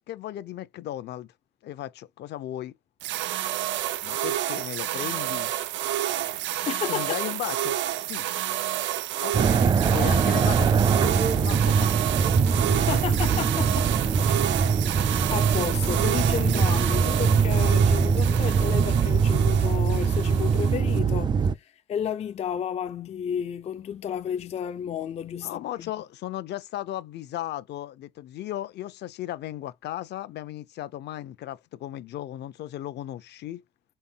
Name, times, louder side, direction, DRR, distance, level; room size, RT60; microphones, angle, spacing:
voice 1, 0.1-1.3 1.6-2.7 4.0-5.5 6.9-8.3 9.2-12.0 14.2-14.3 25.4-33.6, left 13 dB, 65° left, 0.7 m, -36 dB
sound 1, 3.0-21.0, right 13 dB, 80° right, 0.7 m, -30 dB
voice 2, 6.6-7.1 12.7-13.9 14.3-14.5 15.3-25.9, left 8 dB, 35° left, 0.5 m, -32 dB
sound 2, 9.3-21.5, right 6 dB, 25° right, 0.4 m, -22 dB
4.3 x 4.2 x 5.5 m
cardioid pair, 150°, 19 cm